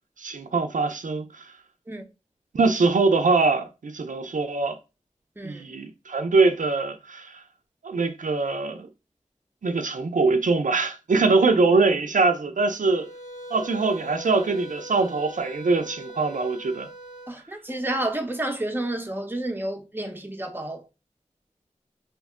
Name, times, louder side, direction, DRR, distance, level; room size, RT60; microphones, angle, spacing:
voice 1, 0.2-1.5 2.5-4.8 5.4-7.4 7.8-8.9 9.6-13.1 13.5-16.9, right 3 dB, 80° right, 0.4 m, -23 dB
sound 1, 12.8-17.4, right 1 dB, 80° left, 0.9 m, -41 dB
voice 2, 17.3-20.8, right 1 dB, 15° right, 0.7 m, -30 dB
2.9 x 2.1 x 3.6 m
wide cardioid pair, 45°, 13 cm